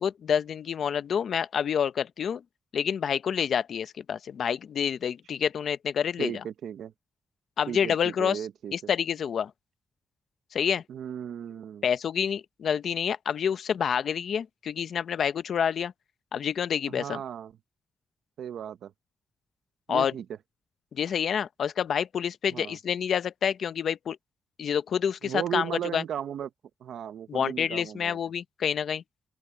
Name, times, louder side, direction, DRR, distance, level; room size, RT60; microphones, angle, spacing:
voice 1, 0.0-2.4 2.7-6.3 7.6-8.4 8.7-9.5 10.5-10.8 11.8-15.9 16.3-17.2 19.9-20.1 20.9-24.2 24.6-26.0 27.3-29.0, left 8 dB, 55° left, 0.7 m, -28 dB
voice 2, 6.2-6.9 7.7-8.9 10.9-11.8 16.9-17.5 18.4-18.9 19.9-20.3 22.5-22.8 25.2-26.5 26.8-28.2, right 9 dB, 75° right, 0.8 m, -36 dB
open air
wide cardioid pair, 180°, 0 cm